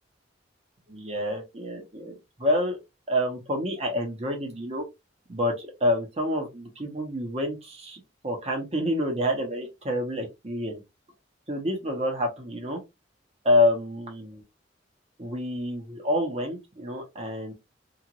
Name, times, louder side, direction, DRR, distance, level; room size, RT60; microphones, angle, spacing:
voice 1, 0.9-2.1 2.4-2.8 3.1-4.8 5.3-10.8 11.5-12.8 13.4-14.4 15.2-17.5, left 1 dB, 35° right, 1.0 m, -28 dB
3.0 x 2.5 x 2.5 m
head